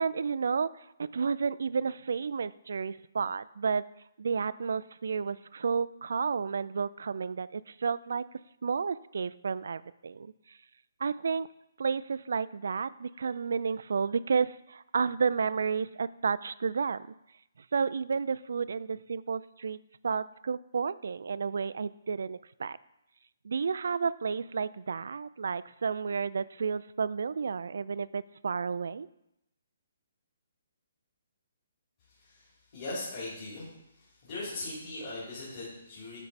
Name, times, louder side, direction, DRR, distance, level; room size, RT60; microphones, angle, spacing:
voice 1, 0.0-3.8 4.2-8.2 8.6-10.6 11.0-11.5 11.8-17.1 17.6-19.8 20.0-22.8 23.4-29.1, right 5 dB, 70° right, 17 dB, 0.3 m, -31 dB
voice 2, 32.2-33.7 33.9-36.2, left 2 dB, 35° left, -9 dB, 3.1 m, -40 dB
9.6 x 4.5 x 4.1 m, 0.83 s
hypercardioid pair, 165°, 0 cm